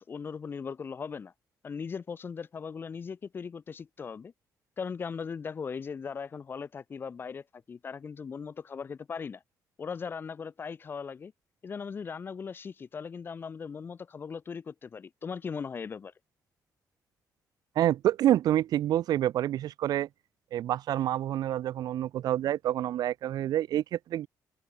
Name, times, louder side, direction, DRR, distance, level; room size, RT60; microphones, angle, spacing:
voice 1, 0.0-1.3 1.6-4.3 4.8-9.4 9.8-11.3 11.6-16.1, left 6 dB, 30° left, 2.8 m, -38 dB
voice 2, 17.8-20.1 20.5-24.3, right 12 dB, 75° right, 2.9 m, -27 dB
cardioid pair, 160°, 7 cm